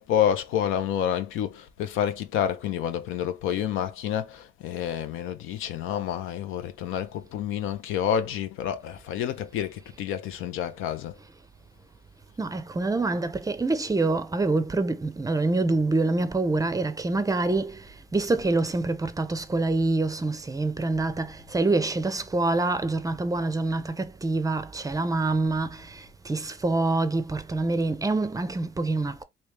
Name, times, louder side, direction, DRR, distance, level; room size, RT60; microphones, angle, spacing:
voice 1, 0.0-11.1, left 9 dB, 90° left, 0.6 m, -29 dB
voice 2, 12.4-29.2, right 2 dB, 15° right, 0.4 m, -26 dB
3.1 x 2.8 x 3.2 m
cardioid pair, 90°, 20 cm